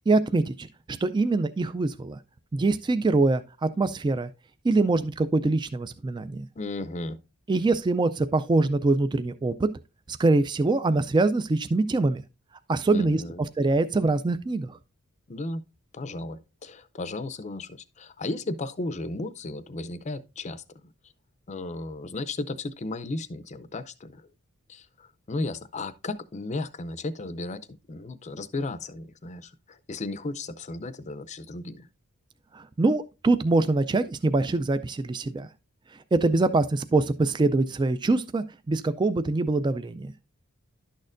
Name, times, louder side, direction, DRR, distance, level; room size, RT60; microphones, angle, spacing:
voice 1, 0.1-2.2 2.5-4.3 4.6-6.4 7.5-9.7 10.1-12.2 12.7-13.2 13.6-14.8 32.5-35.5 36.1-40.1, right 3 dB, 20° right, 0.3 m, -24 dB
voice 2, 6.6-7.2 12.9-13.5 15.3-15.6 15.9-20.9 21.5-24.3 24.7-27.6 27.9-31.9, left 2 dB, 30° left, 0.5 m, -35 dB
11.5 x 6.5 x 2.5 m
head